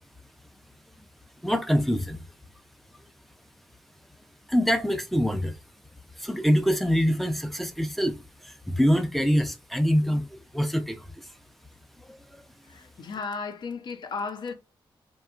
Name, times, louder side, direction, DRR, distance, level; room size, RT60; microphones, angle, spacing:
voice 1, 1.4-2.2 4.5-5.6 6.2-11.1 12.1-12.4, equal, ahead, 0.4 m, -25 dB
voice 2, 12.6-14.5, left 4 dB, 60° left, 0.5 m, -34 dB
2.8 x 2.2 x 2.4 m
wide cardioid pair, 110°, 9 cm